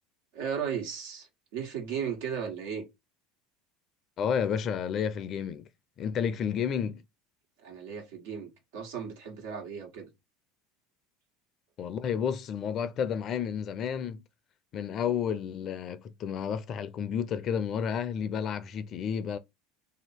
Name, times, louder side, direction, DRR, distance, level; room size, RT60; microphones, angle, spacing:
voice 1, 0.3-2.8 7.6-10.1, right 7 dB, 75° right, 1.4 m, -36 dB
voice 2, 4.2-5.7 6.0-7.0 11.8-14.2 14.7-19.4, left 7 dB, 45° left, 0.6 m, -31 dB
2.9 x 2.9 x 4.4 m
hypercardioid pair, 85°, 0 cm